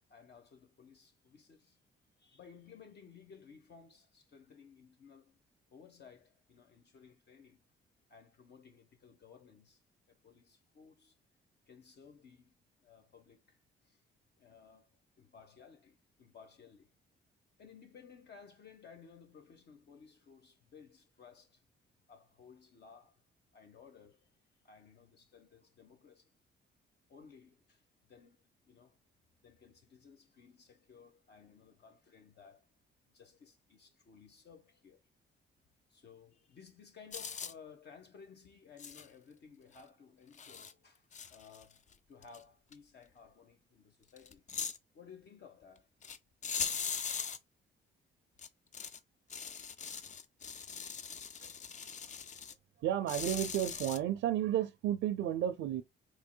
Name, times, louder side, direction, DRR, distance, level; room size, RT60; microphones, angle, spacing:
voice 1, 0.1-1.8 2.2-5.4 5.7-7.6 8.1-9.8 10.1-11.1 11.7-12.5 12.8-13.6 13.8-14.0 14.4-14.9 15.2-16.9 17.6-21.6 22.1-23.2 23.5-24.3 24.6-26.3 27.1-29.0 29.4-32.7 33.1-35.0 35.9-41.8 42.1-44.4 44.9-45.9, left 6 dB, 55° left, 1.1 m, -58 dB
sound 1, 37.1-37.5 38.8-39.1 39.8-39.9 40.3-40.7 41.1-41.9 42.2-42.4 42.7-42.8 44.2-44.8 46.0-46.2 46.4-47.4 48.4-49.0 49.3-52.5 53.1-54.0, left 6 dB, 40° left, 0.5 m, -40 dB
voice 2, 52.8-55.8, right 11 dB, 75° right, 0.5 m, -32 dB
4.6 x 3.3 x 2.2 m
cardioid pair, 90°, 20 cm